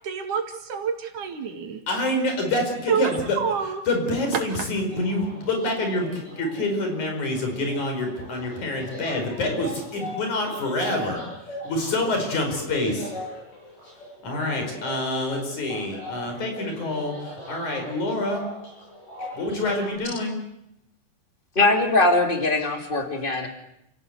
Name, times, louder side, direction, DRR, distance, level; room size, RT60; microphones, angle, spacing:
voice 1, 0.0-1.8 2.9-3.9, right 6 dB, 75° right, 5 dB, 3.6 m, -27 dB
voice 2, 1.9-3.4 3.9-11.3 11.6-13.1 14.2-18.4 19.3-20.4, left 2 dB, 65° left, 4 dB, 6.5 m, -27 dB
sound 1, 4.9-19.9, left 1 dB, 90° left, 9.7 m, -39 dB
voice 3, 21.5-23.5, left 2 dB, 15° left, 4 dB, 3.0 m, -21 dB
29.5 x 17.0 x 8.1 m, 0.80 s
omnidirectional pair, 3.6 m